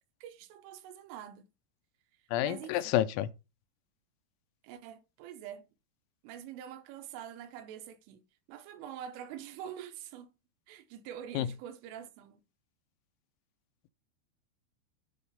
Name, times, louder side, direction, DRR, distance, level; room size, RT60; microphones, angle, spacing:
voice 1, 0.2-1.5 2.4-3.0 4.6-5.7 6.2-8.2 8.5-10.3 10.7-12.4, right 9 dB, 80° right, 3.2 m, -45 dB
voice 2, 2.3-3.3 11.4-11.5, left 13 dB, 85° left, 3.3 m, -29 dB
10.0 x 3.9 x 5.5 m
omnidirectional pair, 5.9 m